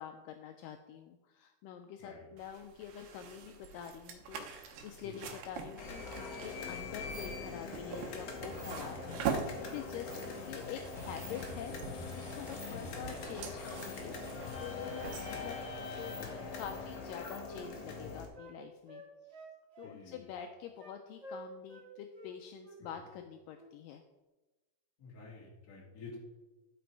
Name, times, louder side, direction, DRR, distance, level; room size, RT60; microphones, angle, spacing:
voice 1, 0.0-16.2 16.6-19.0 19.3-19.4 19.8-24.0, left 8 dB, 85° left, 6 dB, 1.9 m, -46 dB
sound 1, 2.4-16.7, right 6 dB, 80° right, 2.6 m, -44 dB
sound 2, 5.8-18.3, left 4 dB, 60° left, 1.9 m, -42 dB
voice 2, 10.0-10.4 12.7-13.0 16.2-16.9 19.8-20.3 22.8-22.9 25.0-26.2, left 3 dB, 30° left, -3 dB, 2.1 m, -51 dB
Wind instrument woodwind instrument, 16.6-18.6 18.9-20.0 20.3-21.0 21.2-21.9 22.1-22.3 22.6-23.2 23.5-23.7, equal, 30° right, 1.5 m, -51 dB
11.5 x 5.2 x 4.6 m, 1.1 s
omnidirectional pair, 4.3 m